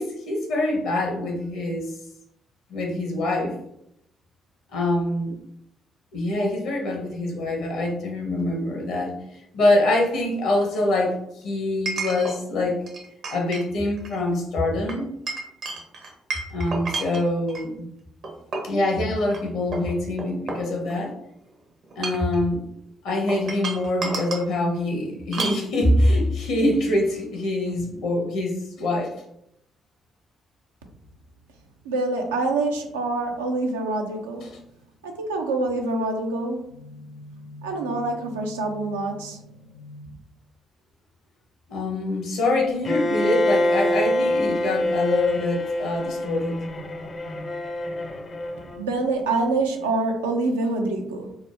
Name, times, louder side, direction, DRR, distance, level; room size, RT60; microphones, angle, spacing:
voice 1, 0.0-1.9 2.7-3.6 4.7-5.4 6.1-9.2 9.5-12.8 13.3-15.1 16.5-17.8 18.6-21.1 22.0-22.6 23.0-29.1 34.4-34.5 41.7-46.6, left 1 dB, 70° left, 1 dB, 0.9 m, -24 dB
Chink clink, 8.4-8.5 11.9-12.4 12.9-13.7 14.0-14.2 14.9-17.7 18.2-18.8 19.3-19.4 19.7-21.1 21.8-22.4 23.3-24.5 25.3-25.6, right 3 dB, 60° right, 0.7 m, -32 dB
voice 2, 31.8-34.5 35.0-40.1 48.7-51.4, right 2 dB, 85° right, 3 dB, 0.4 m, -26 dB
Bowed string instrument, 42.8-48.8, left 1 dB, 45° left, 0.5 m, -25 dB
3.5 x 2.0 x 3.2 m, 0.76 s
hypercardioid pair, 45°, 0 cm